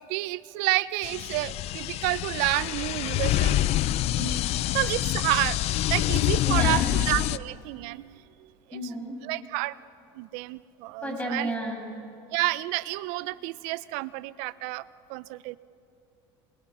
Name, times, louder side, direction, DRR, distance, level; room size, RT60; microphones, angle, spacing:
voice 1, 0.0-3.6 4.2-4.4 4.7-5.6 5.9-8.5 9.2-9.8 10.1-11.5 12.3-14.8 15.1-15.6, right 20 dB, 75° right, 18 dB, 0.6 m, -30 dB
sound 1, 1.0-7.4, left 14 dB, 55° left, 0.6 m, -26 dB
voice 2, 6.4-7.0 8.7-9.2 11.0-11.8, right 1 dB, 10° left, 0 dB, 6.7 m, -32 dB
28.0 x 22.0 x 5.6 m, 2.7 s
supercardioid pair, 95°, 12 cm